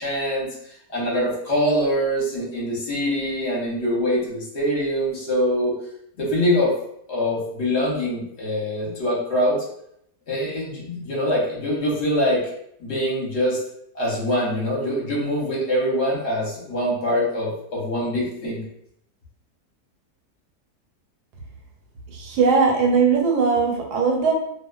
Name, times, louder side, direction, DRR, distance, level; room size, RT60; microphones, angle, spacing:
voice 1, 0.0-5.7 6.2-6.7 7.1-9.6 10.3-12.4 12.8-13.6 13.9-18.6, equal, 50° left, -4 dB, 0.9 m, -24 dB
voice 2, 22.1-24.3, right 5 dB, 85° right, 0 dB, 1.2 m, -19 dB
2.4 x 2.2 x 2.2 m, 0.72 s
omnidirectional pair, 1.7 m